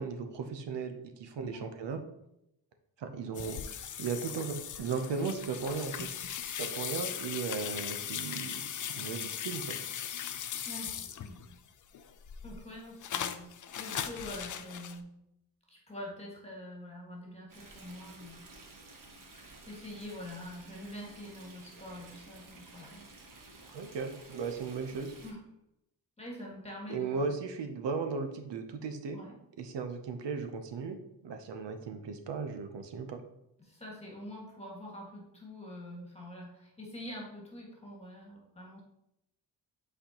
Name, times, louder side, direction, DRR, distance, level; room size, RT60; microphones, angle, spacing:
voice 1, 0.0-2.0 3.0-6.1 6.4-9.8 23.7-25.1 26.9-29.2 29.6-31.0 31.2-33.2, right 5 dB, 75° right, 7 dB, 0.7 m, -36 dB
sound 1, 3.3-11.6 11.9-15.0, left 9 dB, 45° left, 0.4 m, -38 dB
voice 2, 10.6-11.5 12.4-15.1 15.7-18.4 19.3-23.0 23.9-24.0 25.2-25.4 26.2-27.3 29.1-29.4 33.6-38.8, left 1 dB, 15° left, -3 dB, 1.7 m, -45 dB
Stream, 17.5-25.3, right 2 dB, 50° right, 1.1 m, -53 dB
7.9 x 4.3 x 2.9 m, 0.82 s
wide cardioid pair, 120°, 42 cm